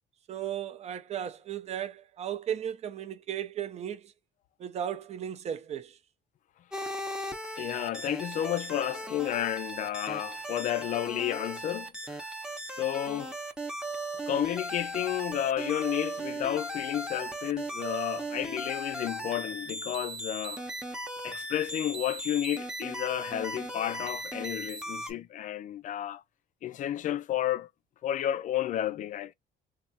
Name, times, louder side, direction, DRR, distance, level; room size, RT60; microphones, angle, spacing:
voice 1, 0.3-4.1 4.6-6.0, right 9 dB, 40° right, 0.5 m, -35 dB
sound 1, 6.7-25.1, right 1 dB, 5° right, 0.7 m, -37 dB
voice 2, 7.6-12.3 12.7-13.3 14.3-20.6 21.2-26.2 26.6-27.7 28.0-29.3, left 11 dB, 50° left, 0.4 m, -32 dB
3.2 x 2.3 x 2.6 m
cardioid pair, 110°, 17 cm